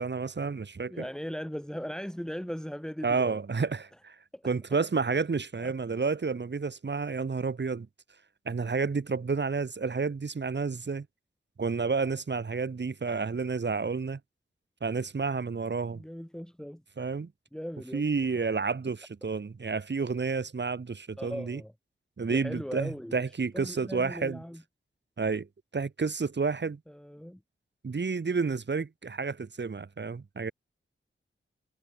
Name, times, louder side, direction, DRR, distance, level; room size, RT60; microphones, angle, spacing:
voice 1, 0.0-1.0 3.0-4.2 4.4-7.9 8.5-11.1 11.6-14.2 14.8-16.0 17.0-17.3 17.9-21.6 22.2-24.4 25.2-25.5 25.7-26.8 27.8-30.5, right 4 dB, 55° right, 2.1 m, -30 dB
voice 2, 0.9-3.4 4.3-4.5 5.6-5.7 15.9-16.8 17.5-18.1 21.2-21.7 22.3-23.2 23.5-24.6 26.9-27.4, equal, 5° left, 4.1 m, -38 dB
wide cardioid pair, 75°, 21 cm